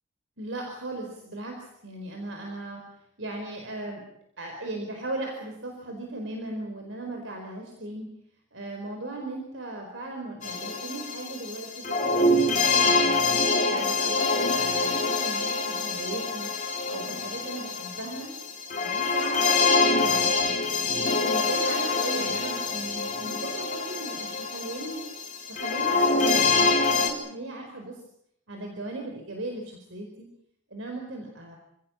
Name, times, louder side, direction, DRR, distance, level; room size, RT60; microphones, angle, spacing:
voice 1, 0.4-2.8 3.2-4.0 4.4-8.1 8.5-13.2 13.7-16.5 16.9-18.3 18.8-20.5 21.2-25.0 25.5-28.0 28.5-30.3 30.7-31.6, right 2 dB, 70° right, 2 dB, 4.6 m, -37 dB
sound 1, 10.4-27.1, left 3 dB, 40° left, 3.9 m, -25 dB
28.5 x 16.5 x 8.7 m, 0.76 s
head